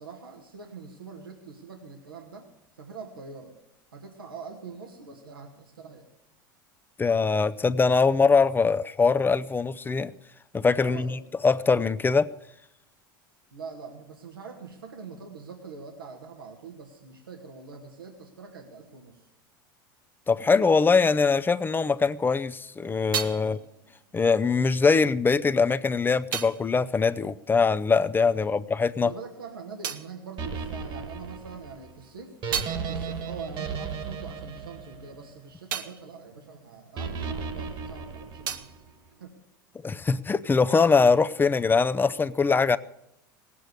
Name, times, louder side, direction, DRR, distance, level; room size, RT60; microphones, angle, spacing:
voice 1, 0.0-2.5 2.8-3.5 3.9-6.1 10.8-11.3 13.5-19.3 23.4-23.6 28.3-28.6 28.9-32.3 32.9-38.7 39.2-39.3, right 5 dB, 90° right, 2 dB, 2.0 m, -43 dB
voice 2, 7.0-10.1 10.5-12.3 20.3-23.6 24.1-29.1 39.8-42.8, left 4 dB, 20° left, 13 dB, 0.6 m, -22 dB
sound 1, 22.5-28.3 28.6-31.3 31.7-37.7 38.0-40.0, right 8 dB, 70° right, 1.2 m, -39 dB
sound 2, 30.4-35.7 37.0-38.9, right 5 dB, 45° right, 2.0 m, -35 dB
18.5 x 8.4 x 8.0 m, 0.82 s
hypercardioid pair, 85°, 11 cm